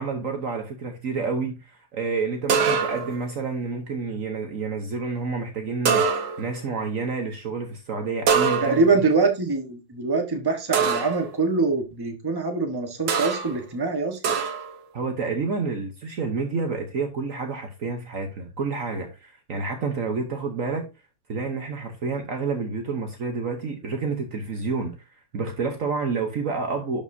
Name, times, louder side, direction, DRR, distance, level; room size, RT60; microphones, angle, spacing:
voice 1, 0.0-9.0 14.9-20.9 21.3-25.0 25.3-27.0, right 4 dB, 55° right, 1.3 m, -29 dB
sound 1, 2.5-3.2 5.9-6.6 8.3-9.0 10.7-11.3 13.1-13.6 14.2-14.8, right 6 dB, 85° right, 1.8 m, -24 dB
voice 2, 8.6-14.3, right 3 dB, 15° right, 1.3 m, -24 dB
12.0 x 5.1 x 2.7 m
omnidirectional pair, 1.9 m